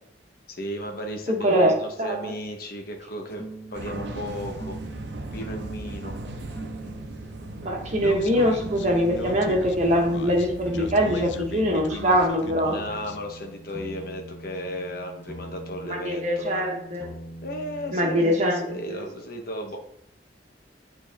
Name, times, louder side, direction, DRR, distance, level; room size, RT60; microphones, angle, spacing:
voice 1, 0.5-4.8 5.3-6.2 12.6-16.7 17.4-19.8, equal, 55° left, 3 dB, 1.1 m, -35 dB
voice 2, 1.3-2.3 7.6-12.8 15.9-17.1 17.9-19.0, equal, 40° right, 1 dB, 1.3 m, -23 dB
sound 1, 3.1-9.8 10.6-18.7, right 2 dB, 15° left, 1.0 m, -42 dB
sound 2, 3.8-12.3, right 2 dB, 70° right, 0.7 m, -38 dB
Speech, 8.0-13.2, left 4 dB, 90° left, 0.5 m, -37 dB
8.5 x 4.0 x 3.5 m, 0.71 s
head